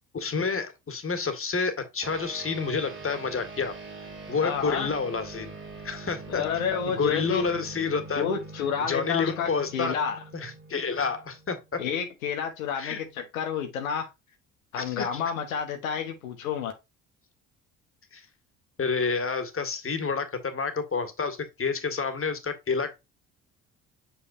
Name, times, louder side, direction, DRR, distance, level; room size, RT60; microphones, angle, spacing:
voice 1, 0.1-3.8 4.3-5.5 5.8-6.4 6.9-8.3 8.8-10.0 10.3-11.8 12.8-13.0 14.8-15.2 18.1-18.2 18.8-23.1, left 5 dB, 30° left, 1.9 m, -29 dB
sound 1, 2.0-11.8, right 3 dB, 30° right, 2.5 m, -43 dB
voice 2, 4.4-4.9 6.3-7.4 8.2-10.2 11.8-14.1 14.7-16.7, left 7 dB, 90° left, 1.1 m, -30 dB
6.4 x 5.7 x 2.6 m
hypercardioid pair, 55°, 40 cm